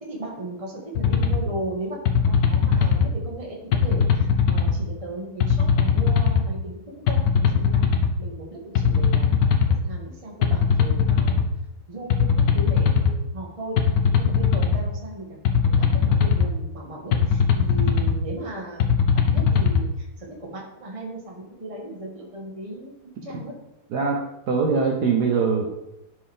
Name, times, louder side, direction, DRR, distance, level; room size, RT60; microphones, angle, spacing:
voice 1, 0.0-2.0 2.3-11.4 11.9-13.9 14.1-22.9 23.2-23.5, right 1 dB, 20° right, -2 dB, 1.5 m, -36 dB
sound 1, 1.0-1.4 2.1-3.1 3.7-4.8 5.4-6.4 7.1-8.1 8.8-9.8 10.4-11.5 12.1-13.1 13.8-14.8 15.4-16.5 17.1-18.2 18.8-19.8, left 7 dB, 70° left, 1.3 m, -19 dB
voice 2, 23.9-25.7, right 5 dB, 65° right, 1 dB, 1.3 m, -22 dB
11.5 x 4.6 x 3.5 m, 0.90 s
omnidirectional pair, 2.1 m